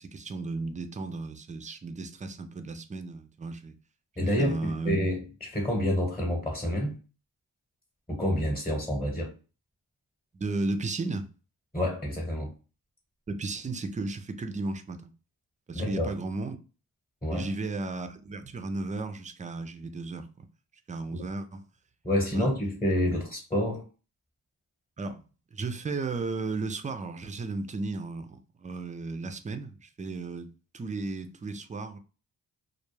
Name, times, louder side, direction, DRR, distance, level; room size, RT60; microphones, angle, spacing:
voice 1, 0.0-3.8 4.2-5.0 10.3-11.3 13.3-15.1 15.7-16.6 17.3-20.5 20.9-21.6 22.3-22.5 25.0-25.2 25.5-32.0, right 3 dB, 20° right, 0.3 m, -34 dB
voice 2, 4.2-7.0 8.1-9.3 11.7-12.5 15.7-16.1 17.2-17.5 21.1-21.3 22.0-23.9, left 1 dB, 15° left, 1.0 m, -28 dB
2.2 x 2.1 x 3.1 m
cardioid pair, 55°, 41 cm